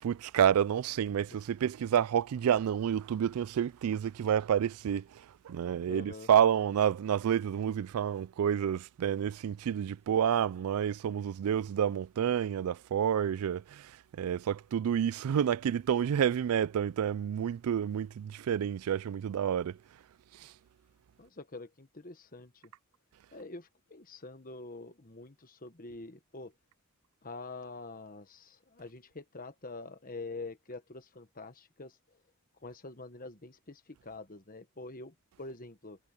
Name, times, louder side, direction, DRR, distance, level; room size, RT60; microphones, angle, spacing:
voice 1, 0.0-19.8 20.4-20.5, right 9 dB, 80° right, 0.3 m, -29 dB
voice 2, 5.9-6.3 21.2-22.7 23.3-26.5 27.2-32.0 32.6-36.0, left 3 dB, 40° left, 1.4 m, -45 dB
head